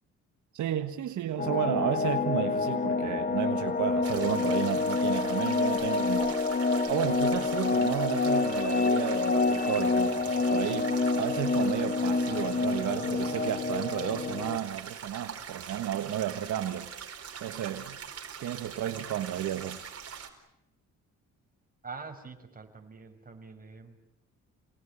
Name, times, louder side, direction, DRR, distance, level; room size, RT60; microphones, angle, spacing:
voice 1, 0.5-6.4 6.9-16.9 17.4-18.0 18.4-19.8, right 11 dB, 75° right, 1.5 m, -32 dB
sound 1, 1.4-14.6, left 3 dB, 30° left, 1.9 m, -27 dB
sound 2, 4.0-20.3, right 7 dB, 50° right, 4.7 m, -43 dB
voice 2, 21.8-24.0, right 4 dB, 30° right, 5.8 m, -45 dB
28.0 x 19.5 x 10.0 m
cardioid pair, 90°, 30 cm